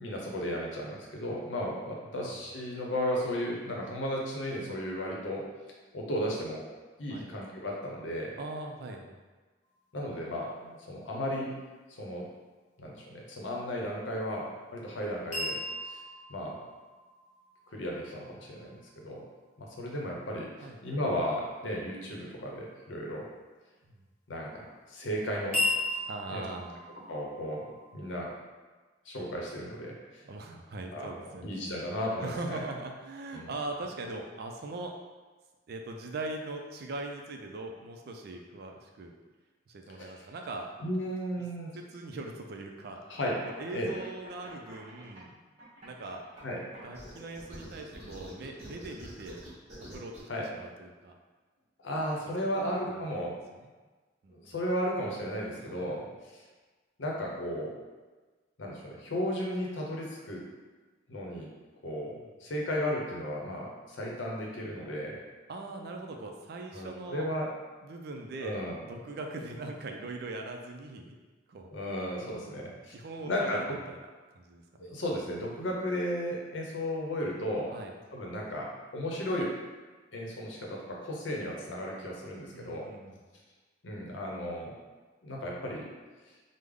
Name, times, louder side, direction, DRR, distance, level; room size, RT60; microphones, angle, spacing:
voice 1, 0.0-5.4 5.9-6.6 7.0-8.3 9.9-11.5 12.0-12.3 12.8-15.6 15.8-16.0 16.3-16.6 17.7-19.2 19.6-23.3 24.3-25.6 26.3-26.4 27.1-27.6 27.9-28.3 29.1-30.2 30.9-31.1 31.4-32.6 33.3-33.5 40.0-40.1 40.8-41.7 43.1-43.4 43.7-43.9 46.4-46.6 50.3-50.5 51.8-53.3 54.3-56.0 56.3-56.4 57.0-57.7 58.6-60.4 61.1-61.5 61.8-62.1 62.4-65.2 66.7-67.5 68.4-68.8 71.7-72.9 73.2-73.8 74.8-77.7 78.1-79.5 80.1-82.9 83.8-84.7 85.2-85.9, equal, 90° left, -2 dB, 0.7 m, -34 dB
voice 2, 8.4-9.2 20.0-20.3 20.6-20.8 23.9-24.0 26.1-26.8 30.2-31.7 32.2-34.9 35.7-39.1 39.7-40.7 41.7-43.0 43.5-45.4 45.8-46.2 46.8-49.4 49.9-51.2 52.5-53.0 53.5-53.7 54.2-54.4 55.6-56.1 62.1-62.2 65.5-67.3 67.8-71.1 71.5-71.7 72.1-74.0 74.3-74.9 77.7-77.9 82.5-83.2, right 2 dB, 55° right, 3 dB, 0.4 m, -41 dB
sound 1, 15.3-19.3 25.5-28.3, left 2 dB, 40° left, 0.9 m, -36 dB
sound 2, 43.4-45.2 45.6-50.2, right 1 dB, 35° right, 1.0 m, -47 dB
3.3 x 2.0 x 3.6 m, 1.3 s
head